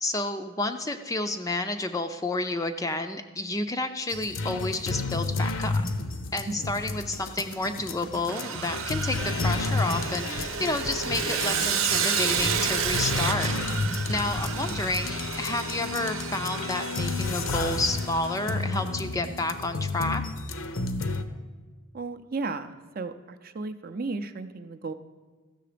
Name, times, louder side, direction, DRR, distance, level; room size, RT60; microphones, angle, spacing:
voice 1, 0.0-5.8 6.3-13.5 14.1-20.2, left 2 dB, 15° left, 7 dB, 0.4 m, -30 dB
sound 1, 4.1-21.2, left 3 dB, 65° left, 0.7 m, -32 dB
sound 2, 6.8-20.2, left 2 dB, 85° left, 1.0 m, -37 dB
Sawing, 8.3-18.5, right 7 dB, 70° right, 0.8 m, -31 dB
voice 2, 21.9-24.9, right 3 dB, 40° right, 9 dB, 0.5 m, -34 dB
14.5 x 6.7 x 5.0 m, 1.4 s
head